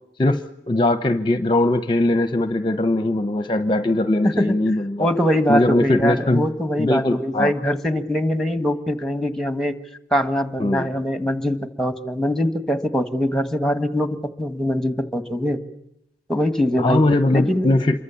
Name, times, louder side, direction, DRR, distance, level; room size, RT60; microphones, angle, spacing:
voice 1, 0.2-5.1 5.5-6.4 6.8-7.5 10.6-10.9 16.7-18.0, left 2 dB, 25° left, 10 dB, 0.9 m, -20 dB
voice 2, 4.2-4.6 5.0-9.8 10.1-15.6 16.3-17.0 17.3-17.7, equal, ahead, 10 dB, 1.5 m, -22 dB
27.5 x 23.5 x 7.0 m, 0.82 s
head